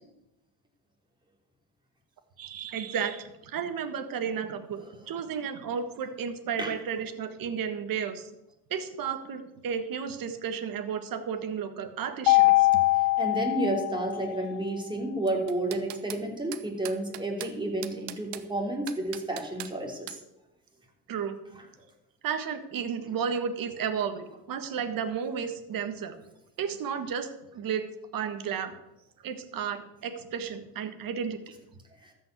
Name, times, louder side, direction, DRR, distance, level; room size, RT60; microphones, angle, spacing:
voice 1, 2.4-8.3 8.7-12.7 21.1-21.3 22.2-26.1 26.6-27.9 28.1-28.7 29.2-31.4, right 7 dB, 50° right, 8 dB, 1.7 m, -33 dB
Mallet percussion, 12.3-14.5, left 20 dB, 70° left, 0.8 m, -23 dB
voice 2, 12.9-20.2 21.6-21.7 32.0-32.1, right 1 dB, 10° right, 1 dB, 3.2 m, -31 dB
sound 1, 15.3-16.2 16.5-17.5 17.8-18.5 18.9-19.7 20.1-20.2, right 14 dB, 70° right, 1.1 m, -40 dB
13.5 x 5.6 x 8.2 m, 0.89 s
cardioid pair, 105°, 43 cm